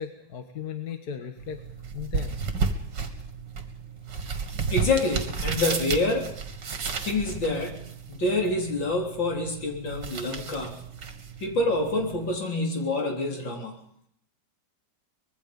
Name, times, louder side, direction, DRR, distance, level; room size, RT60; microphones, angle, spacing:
voice 1, 0.0-1.6 1.9-2.4, left 8 dB, 55° left, 7 dB, 1.9 m, -36 dB
sound 1, 1.4-12.4, right 5 dB, 65° right, 2.5 m, -33 dB
voice 2, 4.7-6.4 7.0-10.8 11.4-13.7, left 2 dB, 75° left, 2 dB, 4.4 m, -27 dB
24.5 x 21.0 x 5.4 m, 0.72 s
omnidirectional pair, 2.1 m